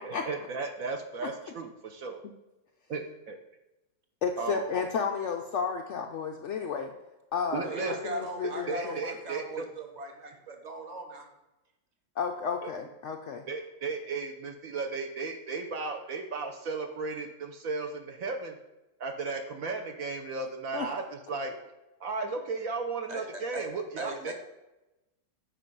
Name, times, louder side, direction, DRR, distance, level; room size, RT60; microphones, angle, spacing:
voice 1, 0.0-2.2 2.9-3.4 4.4-4.6 7.5-8.1 8.7-9.6 12.6-12.7 13.5-18.6 19.0-21.5 22.0-24.3, right 4 dB, 60° right, 4 dB, 1.0 m, -35 dB
voice 2, 4.2-6.9 7.3-9.0 12.2-13.4 20.7-20.9, left 6 dB, 80° left, 3 dB, 0.6 m, -32 dB
voice 3, 7.6-11.2 23.1-23.6 24.0-24.3, right 2 dB, 30° right, 3 dB, 0.9 m, -39 dB
7.5 x 5.1 x 5.3 m, 0.98 s
omnidirectional pair, 1.9 m